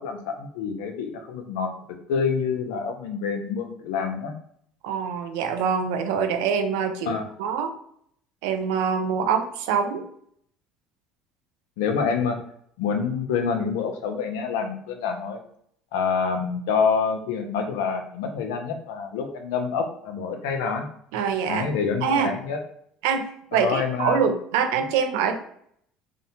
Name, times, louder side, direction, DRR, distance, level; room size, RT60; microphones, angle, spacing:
voice 1, 0.0-1.7 2.1-4.3 7.1-7.2 11.8-12.4 12.8-15.4 15.9-20.9 21.5-22.6 23.5-24.2 24.8-24.9, left 6 dB, 85° left, 4 dB, 0.5 m, -27 dB
voice 2, 4.8-7.7 8.4-10.0 21.1-21.7 22.0-22.3 23.0-23.3 23.5-25.4, right 6 dB, 80° right, 7 dB, 0.4 m, -24 dB
2.7 x 2.1 x 2.7 m, 0.66 s
supercardioid pair, 95°, 0 cm